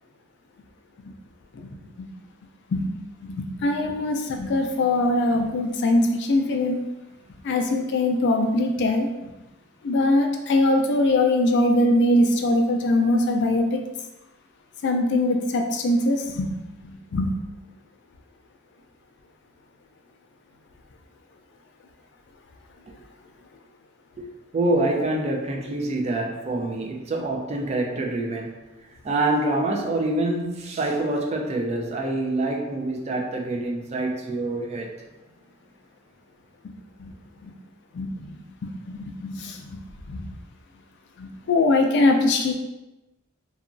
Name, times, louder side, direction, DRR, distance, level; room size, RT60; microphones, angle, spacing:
voice 1, 1.5-2.1 2.7-2.9 3.2-6.8 7.4-9.1 9.8-13.8 14.8-16.5 16.8-17.3 37.0-37.1 37.4-37.5 37.9-38.3 38.6-39.8 40.1-40.3 41.2-42.5, left 2 dB, 60° left, 3 dB, 0.4 m, -22 dB
voice 2, 24.5-28.6 29.0-35.0, right 2 dB, 30° right, 1 dB, 0.3 m, -26 dB
2.8 x 2.3 x 2.5 m, 1.0 s
head